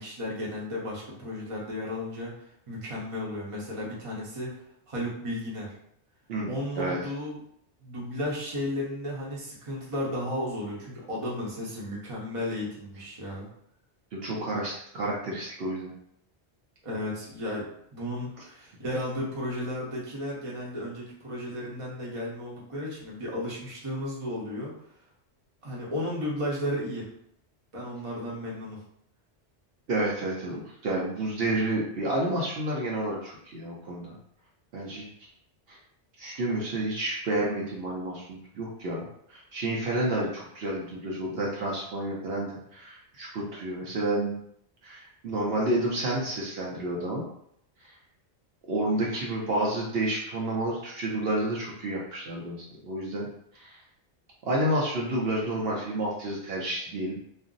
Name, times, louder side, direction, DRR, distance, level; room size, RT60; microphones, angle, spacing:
voice 1, 0.0-4.6 4.9-5.7 6.5-7.4 7.8-13.5 16.8-24.7 25.6-27.1 27.7-28.8, left 1 dB, 35° right, -4 dB, 0.8 m, -34 dB
voice 2, 6.3-7.0 14.1-15.9 29.9-34.1 34.7-35.0 35.7-35.8 36.2-44.3 44.8-47.2 48.7-53.3 53.5-53.8 54.5-57.2, right 1 dB, 65° right, -3 dB, 0.8 m, -30 dB
2.5 x 2.0 x 3.7 m, 0.72 s
omnidirectional pair, 1.1 m